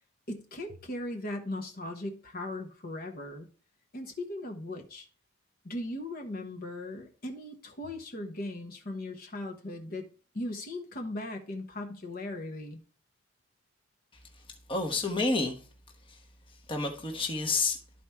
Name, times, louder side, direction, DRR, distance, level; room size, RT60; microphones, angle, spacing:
voice 1, 0.3-3.5 3.9-5.1 5.6-10.1 10.3-12.8, left 1 dB, 40° left, 1.1 m, -38 dB
voice 2, 14.7-15.6 16.1-16.2 16.7-17.8, left 3 dB, 25° left, 1.1 m, -29 dB
12.5 x 4.4 x 3.5 m
head